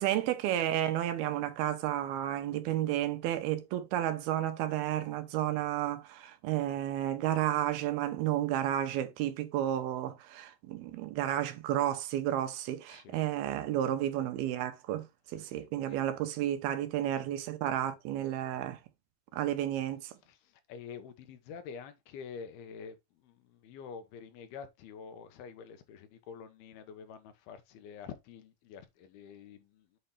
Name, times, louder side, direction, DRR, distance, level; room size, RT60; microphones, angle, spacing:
voice 1, 0.0-15.1 15.3-18.8 19.3-20.1, right 12 dB, 90° right, 2.8 m, -32 dB
voice 2, 12.9-13.2 15.4-15.5 15.9-16.0 20.3-30.0, left 6 dB, 90° left, 3.0 m, -47 dB
7.8 x 3.3 x 4.2 m
omnidirectional pair, 4.3 m